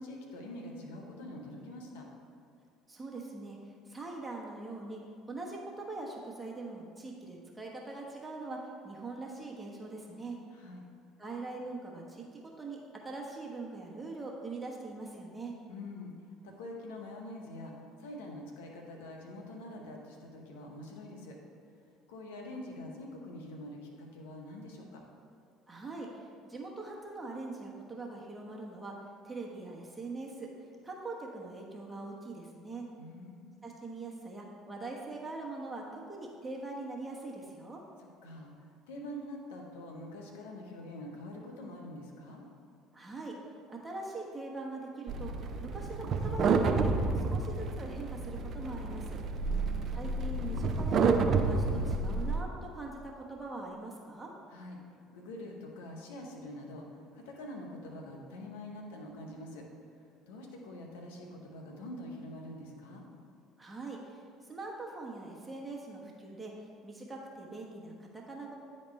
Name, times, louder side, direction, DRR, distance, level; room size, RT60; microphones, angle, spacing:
voice 1, 0.0-2.1 10.5-10.8 15.7-21.4 22.1-25.0 33.0-33.5 38.0-42.5 49.4-49.9 54.5-54.8 55.1-59.6 60.0-63.1, left 1 dB, 80° left, 1 dB, 0.9 m, -45 dB
voice 2, 2.9-5.0 5.3-8.6 8.8-10.4 11.2-15.5 25.7-28.9 29.2-30.5 30.8-32.8 33.6-37.8 42.9-43.3 43.7-45.3 45.6-49.2 49.9-51.0 51.3-54.3 63.6-66.5 66.8-68.5, right 3 dB, 15° right, -2 dB, 1.1 m, -42 dB
sound 1, 45.1-52.4, right 4 dB, 50° right, 0.5 m, -30 dB
9.5 x 4.3 x 3.2 m, 2.3 s
hypercardioid pair, 65°, 0 cm